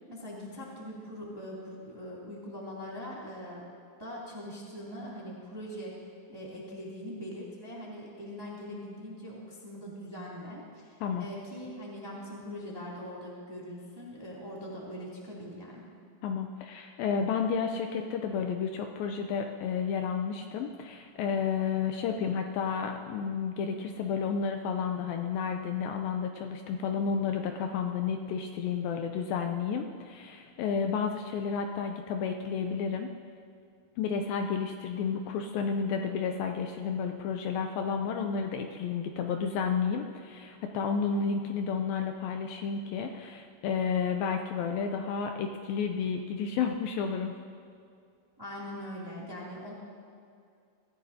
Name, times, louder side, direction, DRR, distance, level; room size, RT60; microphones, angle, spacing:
voice 1, 0.1-3.7 4.0-5.9 6.3-15.9 48.4-49.7, equal, 10° right, -6 dB, 1.8 m, -42 dB
voice 2, 16.2-33.1 34.0-47.4, left 6 dB, 80° left, 4 dB, 2.3 m, -31 dB
23.5 x 14.5 x 2.8 m, 2.3 s
omnidirectional pair, 4.5 m